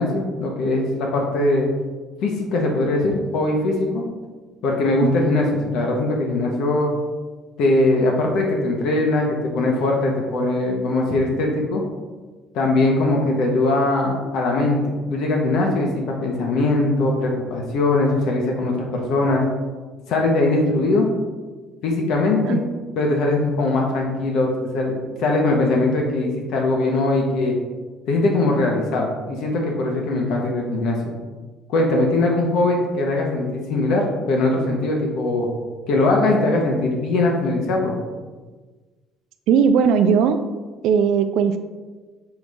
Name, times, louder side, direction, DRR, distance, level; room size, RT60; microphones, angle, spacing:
voice 1, 0.0-1.7 2.2-4.0 4.6-6.9 7.6-11.8 12.5-19.4 20.1-21.1 21.8-22.7 23.0-27.6 28.1-31.0 31.7-35.5 35.9-37.9, left 2 dB, 70° left, 0 dB, 1.1 m, -21 dB
voice 2, 39.5-40.4 40.8-41.6, right 7 dB, 75° right, 8 dB, 0.3 m, -18 dB
7.0 x 4.0 x 3.5 m, 1.3 s
cardioid pair, 145°, 0 cm